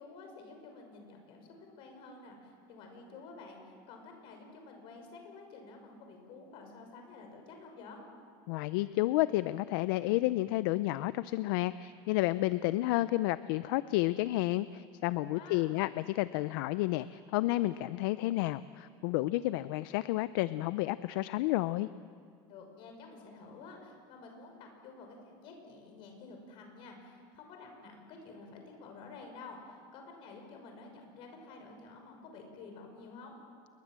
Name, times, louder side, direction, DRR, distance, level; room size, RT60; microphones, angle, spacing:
voice 1, 0.0-8.0 15.2-15.7 22.5-33.3, left 3 dB, 45° left, 3 dB, 6.0 m, -50 dB
voice 2, 8.5-21.9, left 17 dB, 70° left, 15 dB, 0.6 m, -31 dB
28.5 x 22.5 x 7.6 m, 2.2 s
cardioid pair, 165°, 12 cm